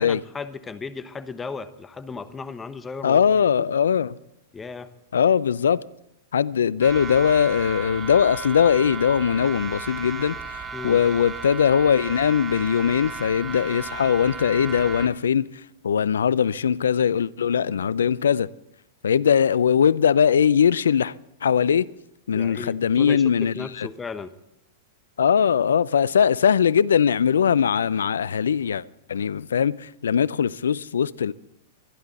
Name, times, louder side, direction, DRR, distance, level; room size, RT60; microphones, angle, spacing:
voice 1, 0.0-3.4 4.5-4.9 10.7-11.0 22.3-24.3, left 4 dB, 15° left, 1.1 m, -35 dB
voice 2, 3.0-4.1 5.1-5.8 6.3-15.5 15.8-18.5 19.0-21.1 21.4-21.9 22.3-23.9 25.2-28.8 29.1-31.3, left 7 dB, 80° left, 0.4 m, -20 dB
sound 1, 6.8-15.1, right 4 dB, 25° right, 1.9 m, -35 dB
23.5 x 11.5 x 4.1 m
hypercardioid pair, 110°, 0 cm